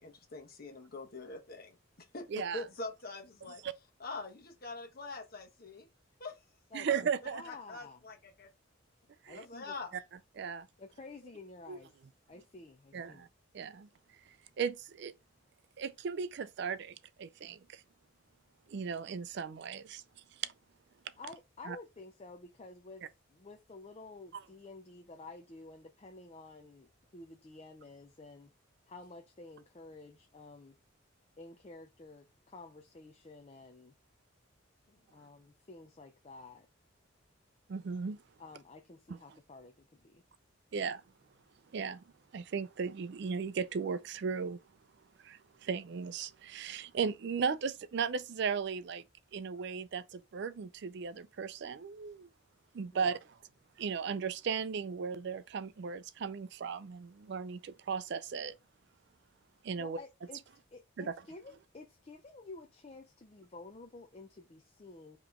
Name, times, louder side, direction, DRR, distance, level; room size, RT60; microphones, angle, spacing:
voice 1, 0.0-3.6 4.0-5.9 6.2-6.4 7.5-8.5 9.3-10.0, left 3 dB, 45° left, 1.1 m, -44 dB
voice 2, 2.3-2.6 3.6-3.7 6.7-7.4 9.2-9.5 10.4-10.7 11.7-11.8 12.9-13.3 13.5-13.9 14.6-15.1 15.8-17.8 18.7-20.0 21.7-21.8 24.3-24.4 37.7-38.2 39.1-39.2 40.7-41.0 41.7-42.0 42.3-44.6 45.2-49.0 49.3-52.3 52.7-53.2 53.8-58.5 59.6-60.0 61.0-61.1, right 6 dB, 55° right, 0.4 m, -36 dB
voice 3, 7.3-8.0 9.3-9.7 10.8-11.9 12.3-13.3 21.2-23.0 23.3-28.5 28.9-30.8 31.4-33.9 35.1-36.7 38.4-40.2 52.9-53.2 59.8-60.4 60.7-65.2, left 3 dB, 30° left, 0.5 m, -51 dB
4.9 x 3.0 x 3.6 m
head